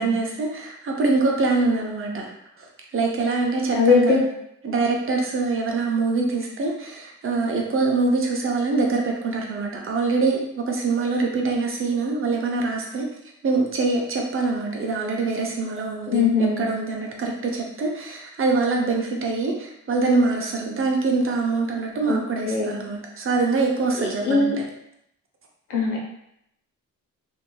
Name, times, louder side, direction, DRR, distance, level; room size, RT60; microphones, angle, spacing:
voice 1, 0.0-2.3 2.6-2.7 2.9-4.2 4.6-13.1 13.4-16.2 16.6-24.5, right 3 dB, 45° right, 0 dB, 0.6 m, -24 dB
voice 2, 3.7-4.2 16.1-16.7 22.1-22.2 22.5-22.8 24.0-24.5 25.7-26.0, left 4 dB, 85° left, -2 dB, 0.9 m, -20 dB
2.8 x 2.6 x 2.2 m, 0.77 s
cardioid pair, 100°, 31 cm